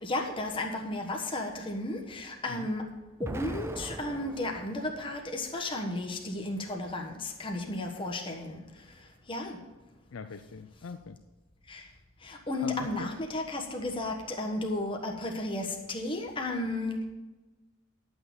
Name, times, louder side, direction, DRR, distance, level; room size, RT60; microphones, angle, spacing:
voice 1, 0.0-2.8 3.2-7.1 7.4-8.6 9.3-9.6 11.7-11.8 12.5-17.1, left 2 dB, 25° left, 1.3 m, -33 dB
Explosion, 3.2-5.3, right 2 dB, 10° right, 0.3 m, -40 dB
voice 2, 10.1-11.2 12.6-13.1, left 4 dB, 75° left, 0.5 m, -42 dB
11.0 x 6.3 x 7.0 m
head